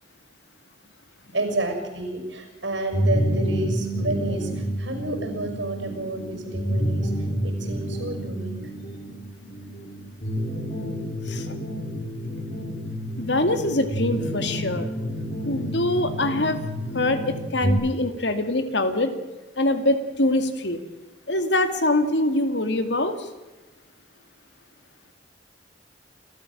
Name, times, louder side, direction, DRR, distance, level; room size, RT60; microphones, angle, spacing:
voice 1, 1.3-7.1 7.4-8.5, right 2 dB, 90° right, 5 dB, 6.5 m, -30 dB
sound 1, 2.9-17.7, equal, 45° left, 6.3 m, -29 dB
voice 2, 13.2-14.9 15.4-16.6 16.9-19.1 19.6-20.8 21.3-23.1, left 1 dB, 75° left, 8 dB, 2.5 m, -24 dB
29.0 x 13.5 x 7.6 m, 1.1 s
head